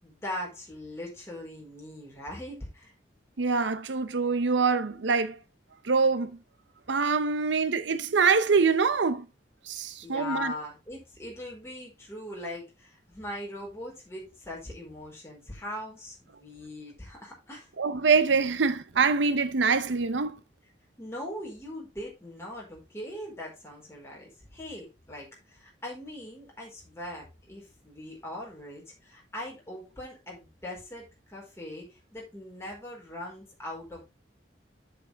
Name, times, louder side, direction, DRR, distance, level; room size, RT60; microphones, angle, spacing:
voice 1, 0.0-2.9 10.0-17.7 21.0-34.0, left 1 dB, 15° left, 4.4 m, -40 dB
voice 2, 3.4-5.4 5.8-6.4 6.9-9.3 9.7-10.5 17.8-20.4, right 5 dB, 80° right, 0.7 m, -24 dB
8.1 x 7.6 x 3.4 m
head